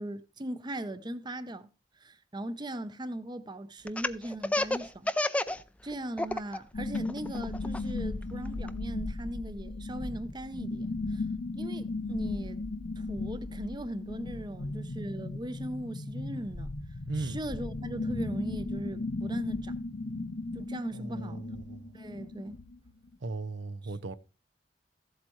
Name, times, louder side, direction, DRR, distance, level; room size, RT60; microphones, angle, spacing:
voice 1, 0.0-1.7 2.0-5.1 5.8-11.2 11.5-12.6 13.0-16.7 17.2-19.8 20.5-21.5 21.9-22.6 23.8-23.9, right 1 dB, 25° right, 0.7 m, -39 dB
Laughter, 3.9-5.6 5.9-6.6 6.9-8.7, left 2 dB, 5° left, 0.4 m, -30 dB
sound 1, 6.7-23.1, left 3 dB, 60° left, 0.7 m, -36 dB
voice 2, 17.1-17.4 20.9-21.9 23.2-24.2, right 3 dB, 85° right, 0.7 m, -37 dB
15.0 x 8.0 x 3.1 m
head